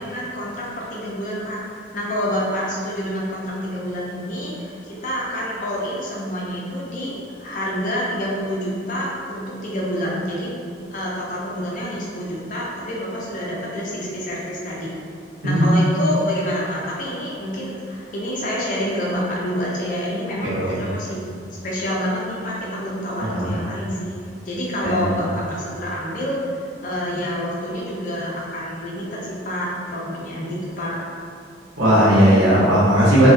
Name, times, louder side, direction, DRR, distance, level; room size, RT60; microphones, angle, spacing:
voice 1, 0.0-1.6 1.9-7.1 7.4-10.5 10.9-14.9 15.4-21.2 21.6-24.2 24.5-31.0, equal, 45° left, -5 dB, 0.5 m, -27 dB
voice 2, 23.2-23.5 24.8-25.0 31.8-33.3, equal, 90° right, -9 dB, 0.9 m, -16 dB
2.3 x 2.2 x 2.5 m, 2.2 s
head